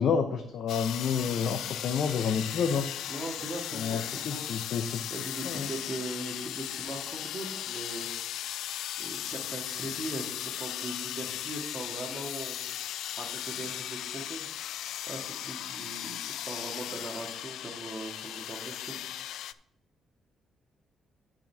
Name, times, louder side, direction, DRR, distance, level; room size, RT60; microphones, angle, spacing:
voice 1, 0.0-2.9 3.7-5.1 5.4-5.7, left 6 dB, 60° left, 6 dB, 0.7 m, -29 dB
sound 1, 0.7-19.5, left 11 dB, 85° left, 0.3 m, -37 dB
voice 2, 3.1-4.4 5.1-8.1 9.0-10.3 10.6-12.6 13.2-14.4 15.1-19.0, right 1 dB, 25° right, 1 dB, 2.0 m, -40 dB
15.0 x 5.1 x 3.5 m, 0.82 s
cardioid pair, 135°, 0 cm